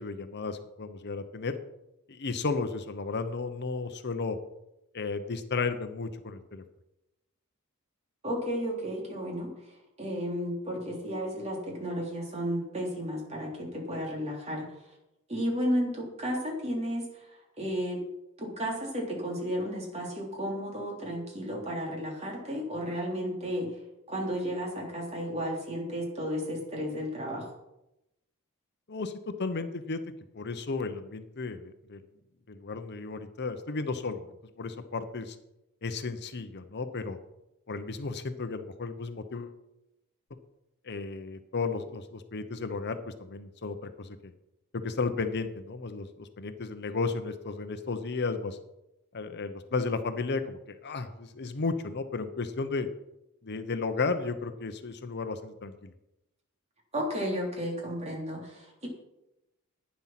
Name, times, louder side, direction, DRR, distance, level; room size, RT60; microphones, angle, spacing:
voice 1, 0.0-1.5 2.1-4.4 4.9-6.6 28.9-30.0 30.3-32.0 32.5-34.3 34.6-35.4 35.8-37.2 37.7-39.6 40.8-44.3 44.7-48.6 49.1-52.9 53.4-55.9, left 4 dB, 50° left, 9 dB, 0.8 m, -34 dB
voice 2, 8.2-14.7 15.3-18.0 18.4-23.8 24.1-27.5 56.9-58.9, equal, 30° right, -1 dB, 3.6 m, -33 dB
11.5 x 9.7 x 5.9 m, 0.90 s
head